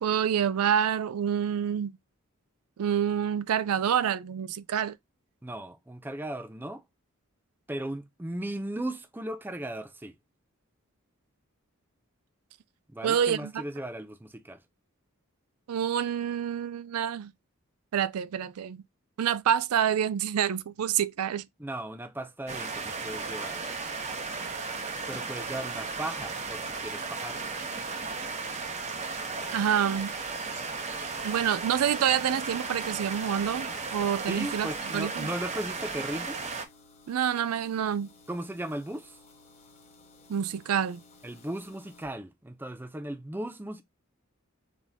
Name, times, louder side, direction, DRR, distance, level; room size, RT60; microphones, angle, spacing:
voice 1, 0.0-2.0 2.8-5.0 13.0-13.6 15.7-17.3 17.9-18.8 19.2-21.4 29.5-30.1 31.2-34.7 34.9-35.3 37.1-38.1 40.3-41.0, right 9 dB, 90° right, 0.4 m, -27 dB
voice 2, 5.4-6.8 7.7-10.1 12.9-14.6 21.6-23.6 25.1-27.4 34.3-36.4 38.3-39.2 41.2-43.8, right 1 dB, 10° right, 0.4 m, -37 dB
sound 1, 22.5-36.6, right 4 dB, 30° right, 0.8 m, -35 dB
sound 2, 33.4-42.1, left 3 dB, 30° left, 0.9 m, -56 dB
4.1 x 3.7 x 3.5 m
head